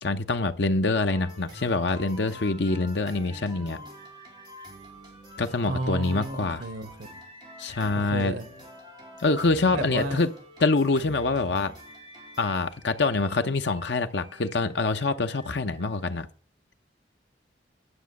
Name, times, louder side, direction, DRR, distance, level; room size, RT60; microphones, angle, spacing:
voice 1, 0.0-3.8 5.4-6.6 7.6-8.4 9.2-10.3 10.6-11.7 12.4-16.3, left 3 dB, 70° left, 0.8 m, -25 dB
sound 1, 1.1-16.2, equal, 25° right, 4.1 m, -47 dB
voice 2, 5.6-7.2 8.0-8.4 9.7-10.2, right 2 dB, 85° right, 1.1 m, -33 dB
9.9 x 6.2 x 8.2 m
head